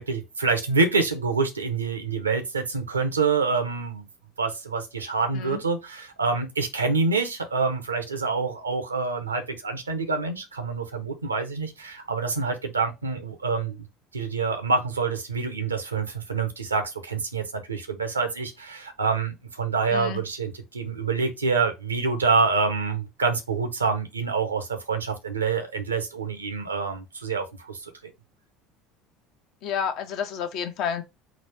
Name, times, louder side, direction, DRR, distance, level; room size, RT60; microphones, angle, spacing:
voice 1, 0.0-4.1 4.4-13.8 14.1-27.8, right 4 dB, 85° right, 0.6 m, -26 dB
voice 2, 19.9-20.2 29.6-31.0, left 7 dB, 55° left, 0.7 m, -30 dB
4.0 x 2.4 x 4.5 m
figure-of-eight pair, 65°, 0 cm